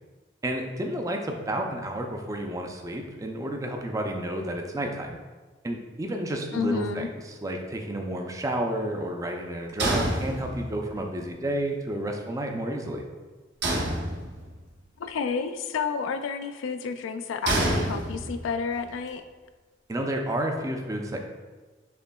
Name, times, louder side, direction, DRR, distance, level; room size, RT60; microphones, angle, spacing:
voice 1, 0.4-5.2 5.6-13.0 19.9-21.2, right 1 dB, 15° right, 3 dB, 0.4 m, -31 dB
voice 2, 6.5-7.1 15.0-19.2, left 5 dB, 90° left, 9 dB, 0.3 m, -30 dB
sound 1, 9.8-10.9 13.6-14.6 17.5-18.6, right 1 dB, 60° right, 0.8 m, -27 dB
6.6 x 2.9 x 2.3 m, 1.3 s
head